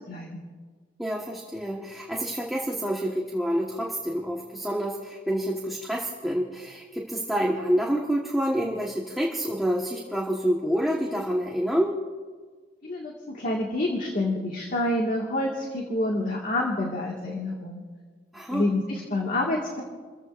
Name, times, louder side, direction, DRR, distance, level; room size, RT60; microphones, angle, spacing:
voice 1, 0.1-0.4 12.8-17.8 18.5-19.8, left 1 dB, 45° left, -1 dB, 2.0 m, -28 dB
voice 2, 1.0-12.0 18.3-18.7, equal, ahead, -3 dB, 1.4 m, -28 dB
30.0 x 15.5 x 2.6 m, 1.5 s
head